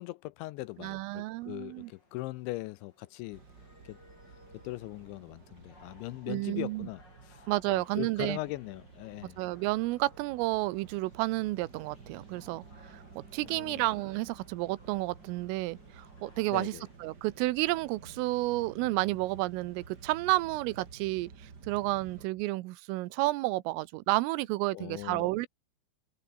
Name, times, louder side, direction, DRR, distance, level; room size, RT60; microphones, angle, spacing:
voice 1, 0.0-3.4 3.8-4.0 4.6-9.4 13.4-13.9 16.5-16.8 24.7-25.3, left 20 dB, 80° left, 2.7 m, -40 dB
sound 1, 0.6-17.0, left 2 dB, 20° left, 6.4 m, -62 dB
voice 2, 0.8-1.9 6.3-6.9 7.5-8.4 9.2-13.0 13.3-16.7 17.0-21.3 21.7-25.5, right 19 dB, 90° right, 3.5 m, -31 dB
sound 2, 3.3-22.3, right 5 dB, 30° right, 1.9 m, -53 dB
omnidirectional pair, 5.7 m